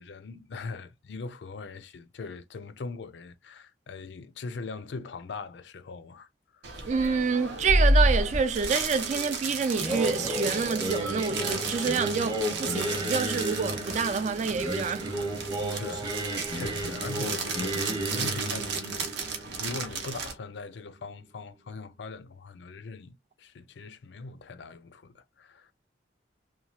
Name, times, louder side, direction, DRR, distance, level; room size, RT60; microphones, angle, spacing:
voice 1, 0.0-6.8 15.7-16.1 16.5-25.7, left 4 dB, 80° left, 0.4 m, -41 dB
sound 1, 6.6-20.3, right 2 dB, 80° right, 0.7 m, -31 dB
voice 2, 6.8-15.1, right 5 dB, 40° right, 0.3 m, -28 dB
Singing, 9.8-20.9, right 1 dB, 25° right, 0.7 m, -33 dB
2.9 x 2.2 x 2.8 m
head